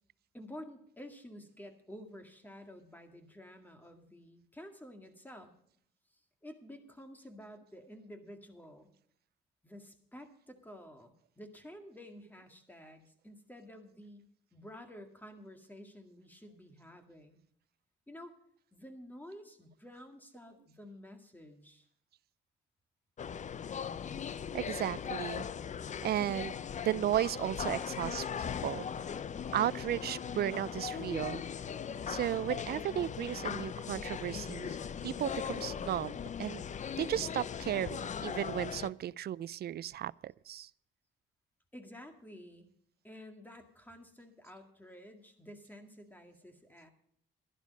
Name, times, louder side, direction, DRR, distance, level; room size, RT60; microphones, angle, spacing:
voice 1, 0.3-5.5 6.1-8.9 9.6-17.4 18.1-18.3 18.7-21.9 41.7-42.7 43.0-46.9, equal, 10° left, 2.0 m, -51 dB
sound 1, 23.2-38.9, left 7 dB, 40° left, 0.5 m, -39 dB
voice 2, 24.5-25.5 26.0-26.5 26.8-28.9 29.5-31.4 32.1-34.8 35.0-36.6 37.0-40.7, right 12 dB, 55° right, 0.4 m, -34 dB
12.0 x 11.5 x 5.2 m
cardioid pair, 90°, 20 cm